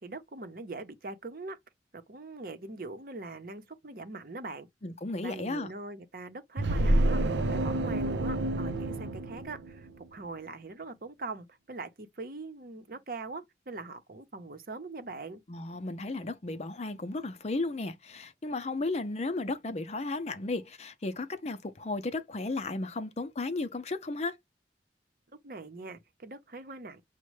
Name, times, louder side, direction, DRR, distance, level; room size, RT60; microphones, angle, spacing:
voice 1, 0.0-1.6 1.9-4.7 5.2-15.4 25.4-27.0, right 3 dB, 55° right, 0.8 m, -42 dB
voice 2, 4.8-5.7 15.5-24.4, left 2 dB, 40° left, 0.5 m, -34 dB
sound 1, 6.6-10.0, right 1 dB, 85° right, 0.6 m, -28 dB
6.2 x 2.2 x 3.1 m
head